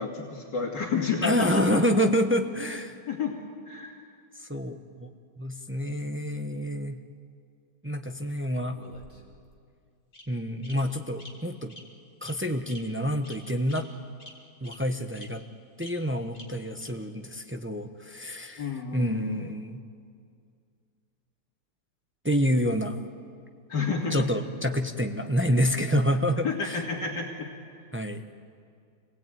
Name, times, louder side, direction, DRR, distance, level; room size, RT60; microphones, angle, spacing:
voice 1, 0.0-1.8 3.1-3.3 3.7-4.0 18.6-19.4 23.7-24.3 26.4-27.5, left 5 dB, 70° left, 0 dB, 2.8 m, -30 dB
voice 2, 1.2-3.0 4.4-5.1 5.4-7.0 7.8-8.8 10.3-11.7 12.2-13.9 14.6-15.4 15.8-19.8 22.2-23.0 24.1-26.8 27.9-28.2, equal, 10° right, 6 dB, 0.7 m, -28 dB
Bird vocalization bird call bird song, 8.7-9.5 10.1-10.2 10.6-10.7 11.2-11.3 11.7-11.8 12.2-12.3 12.7-12.8 13.2-13.4 13.7-13.8 14.2-14.3 14.6-14.7 15.1-15.2 15.8-15.9 16.3-16.4 16.8-16.9, left 1 dB, 30° left, 3.0 m, -46 dB
26.5 x 19.0 x 9.2 m, 2.3 s
omnidirectional pair, 1.9 m